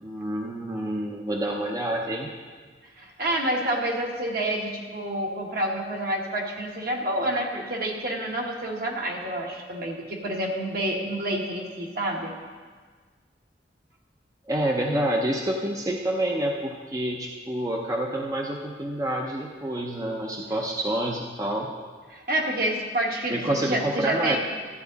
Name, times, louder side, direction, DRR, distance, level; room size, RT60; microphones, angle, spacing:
voice 1, 0.0-2.3 14.5-21.7 23.3-24.4, right 1 dB, 20° right, 0 dB, 0.6 m, -28 dB
voice 2, 3.0-12.3 22.1-24.4, right 1 dB, 55° right, -1 dB, 1.6 m, -28 dB
13.5 x 9.4 x 4.0 m, 1.5 s
head